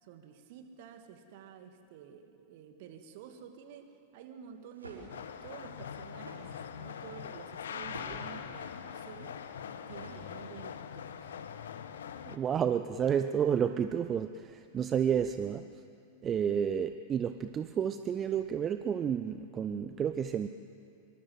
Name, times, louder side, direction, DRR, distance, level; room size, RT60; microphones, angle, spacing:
voice 1, 0.0-9.4 9.9-11.3, right 8 dB, 50° right, 7 dB, 2.4 m, -50 dB
sound 1, 4.5-10.8, right 1 dB, 80° right, 4.3 m, -52 dB
sound 2, 5.1-12.4, left 8 dB, 65° left, 1.3 m, -42 dB
voice 2, 12.2-15.6 16.2-20.5, right 8 dB, 25° right, 10 dB, 0.7 m, -30 dB
25.5 x 23.0 x 7.9 m, 2.5 s
figure-of-eight pair, 90°, 0 cm